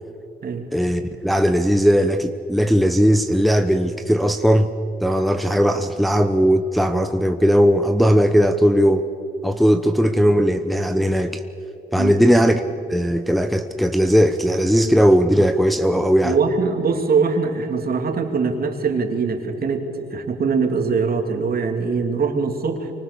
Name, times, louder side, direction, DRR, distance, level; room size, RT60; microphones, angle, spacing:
voice 1, 0.7-4.7 5.0-9.1 9.4-11.4 11.9-12.6 12.9-16.4, equal, ahead, 7 dB, 1.0 m, -18 dB
voice 2, 12.0-12.4 16.2-22.9, right 5 dB, 50° right, 4 dB, 3.1 m, -22 dB
25.0 x 24.0 x 7.1 m, 2.9 s
cardioid pair, 90°, 20 cm